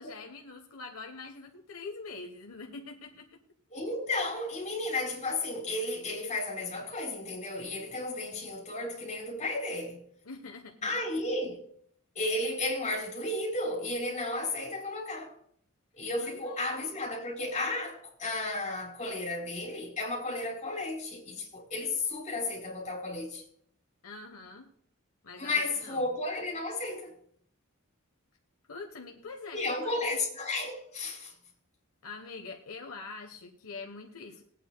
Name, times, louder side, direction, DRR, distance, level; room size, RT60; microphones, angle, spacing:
voice 1, 0.0-3.4 10.2-10.9 16.2-16.7 24.0-24.7 25.2-26.1 28.7-29.9 32.0-34.4, left 4 dB, 75° left, 1.1 m, -44 dB
voice 2, 3.7-10.0 10.8-11.6 12.1-15.3 15.9-23.4 25.4-27.1 29.5-31.3, left 2 dB, 35° left, 4.0 m, -33 dB
21.0 x 9.0 x 2.3 m
head